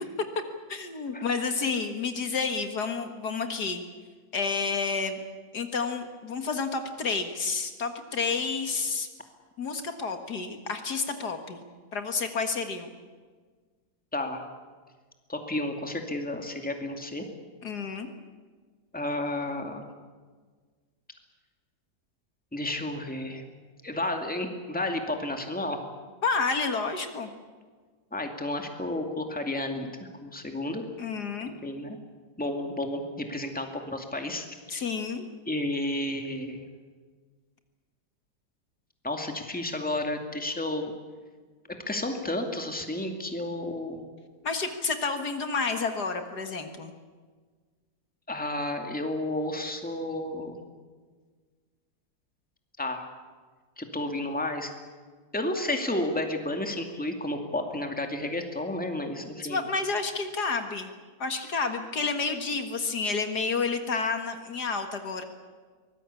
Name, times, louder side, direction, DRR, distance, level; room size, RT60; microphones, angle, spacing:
voice 1, 0.7-3.8 4.3-5.2 5.5-9.1 9.6-11.7 11.9-12.9 17.6-18.1 26.2-27.3 31.0-31.6 34.7-35.3 44.4-46.9 59.4-60.9 61.2-65.2, left 4 dB, 65° left, 6 dB, 2.2 m, -30 dB
voice 2, 15.3-17.3 18.9-19.9 22.5-23.4 23.8-25.8 28.1-30.8 31.4-32.0 32.4-34.8 35.5-36.7 39.0-40.9 41.9-44.0 48.3-50.6 52.8-53.0 53.8-54.7 55.3-59.6, left 1 dB, 5° left, 4 dB, 2.3 m, -32 dB
24.0 x 20.0 x 8.4 m, 1.5 s
omnidirectional pair, 1.9 m